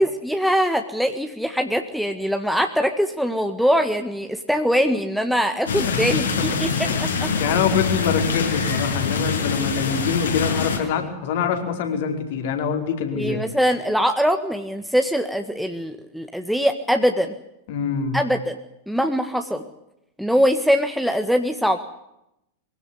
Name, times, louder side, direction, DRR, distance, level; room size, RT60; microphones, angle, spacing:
voice 1, 0.0-6.9 13.2-17.3 18.1-18.6 18.9-19.6 20.2-21.8, equal, ahead, 6 dB, 1.7 m, -22 dB
sound 1, 5.7-10.8, left 5 dB, 65° left, 6.0 m, -24 dB
voice 2, 5.8-6.5 6.9-7.0 7.3-13.5 17.7-18.2, left 6 dB, 50° left, 6 dB, 4.6 m, -25 dB
24.0 x 16.5 x 9.9 m, 0.83 s
figure-of-eight pair, 90°, 0 cm